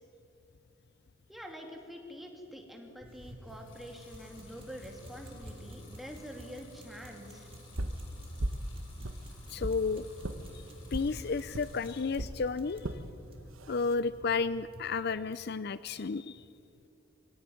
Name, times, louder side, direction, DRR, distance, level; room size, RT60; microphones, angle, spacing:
voice 1, 1.3-7.5, equal, ahead, 2 dB, 2.8 m, -46 dB
sound 1, 3.0-14.9, equal, 30° right, 2.7 m, -52 dB
Water tap faucet / Sink (filling or washing) / Liquid, 3.4-12.3 12.7-13.4, left 3 dB, 75° left, 6.3 m, -57 dB
sound 2, 7.8-8.0 8.4-8.7 9.0-9.8 10.2-10.4 10.9-11.1 11.5-11.7 12.2-12.4 12.8-13.0 13.6-13.9, right 1 dB, 90° right, 1.3 m, -35 dB
voice 2, 9.5-10.0 10.9-13.0 13.7-16.4, left 4 dB, 50° left, 15 dB, 0.5 m, -32 dB
23.5 x 17.0 x 9.5 m, 2.8 s
head